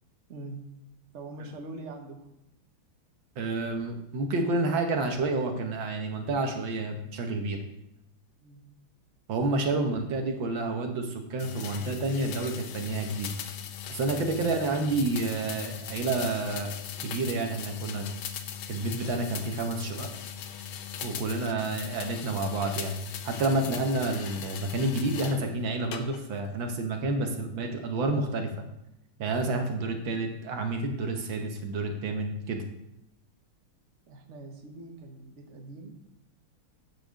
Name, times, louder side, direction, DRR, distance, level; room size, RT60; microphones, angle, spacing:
voice 1, 0.3-0.6 1.1-2.3 8.4-8.7 34.1-35.9, right 2 dB, 40° right, 2 dB, 1.3 m, -44 dB
voice 2, 3.4-7.6 9.3-13.3 13.9-16.7 17.0-18.1 18.7-20.1 21.0-22.9 23.2-28.5 29.2-32.6, right 2 dB, 70° right, 4 dB, 1.8 m, -29 dB
sound 1, 11.4-25.4 25.9-26.5, left 9 dB, 85° left, 1.6 m, -39 dB
9.4 x 5.0 x 6.3 m, 0.83 s
omnidirectional pair, 2.2 m